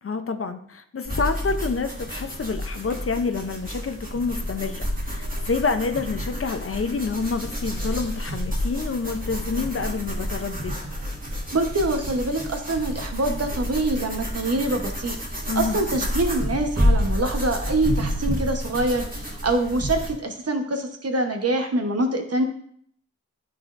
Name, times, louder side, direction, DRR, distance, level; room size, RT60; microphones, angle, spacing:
voice 1, 0.0-10.7 15.5-15.8, left 4 dB, 45° left, 8 dB, 0.6 m, -28 dB
sound 1, 1.0-20.1, equal, 25° right, 1.7 m, -29 dB
voice 2, 11.5-15.2 15.5-22.4, right 2 dB, 50° right, 4 dB, 1.0 m, -25 dB
10.5 x 4.1 x 2.5 m, 0.63 s
wide cardioid pair, 70°, 31 cm